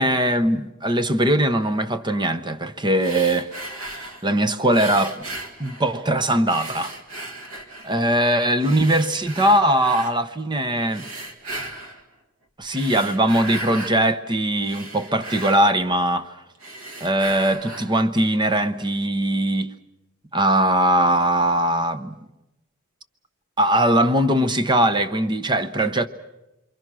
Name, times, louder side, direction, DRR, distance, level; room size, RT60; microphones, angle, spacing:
voice 1, 0.0-3.5 4.2-5.3 5.6-6.9 7.9-11.1 12.6-16.3 17.0-19.7 20.3-22.2 23.6-26.1, right 1 dB, 20° right, 0.9 m, -20 dB
sound 1, 3.0-4.3 4.7-6.1 6.5-8.0 8.6-10.2 10.9-12.0 12.6-14.0 14.4-16.2 16.5-18.0, right 2 dB, 85° right, 2.3 m, -36 dB
28.5 x 23.0 x 6.2 m
head